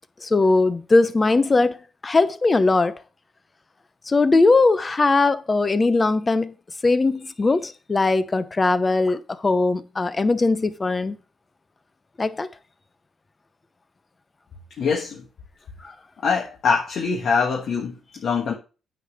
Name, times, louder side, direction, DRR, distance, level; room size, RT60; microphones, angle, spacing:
voice 1, 0.2-1.8 2.0-3.0 4.1-6.5 6.8-11.2 12.2-12.5 15.8-15.9, left 3 dB, 25° left, 0.7 m, -20 dB
voice 2, 14.8-15.2 16.2-18.5, left 5 dB, 60° left, 1.4 m, -23 dB
9.3 x 3.3 x 6.3 m
cardioid pair, 90°, 0 cm